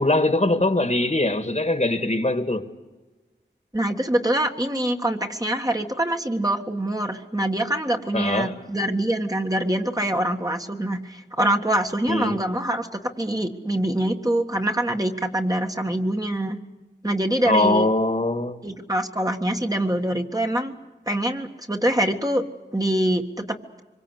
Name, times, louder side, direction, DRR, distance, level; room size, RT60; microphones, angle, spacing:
voice 1, 0.0-2.6 8.1-8.5 12.1-12.4 17.5-18.6, left 2 dB, 40° left, 1.9 m, -22 dB
voice 2, 3.7-16.6 17.0-17.9 18.6-20.8 21.1-22.4 22.7-23.6, right 1 dB, 20° right, 1.7 m, -24 dB
24.5 x 23.0 x 8.3 m
wide cardioid pair, 50°, 19 cm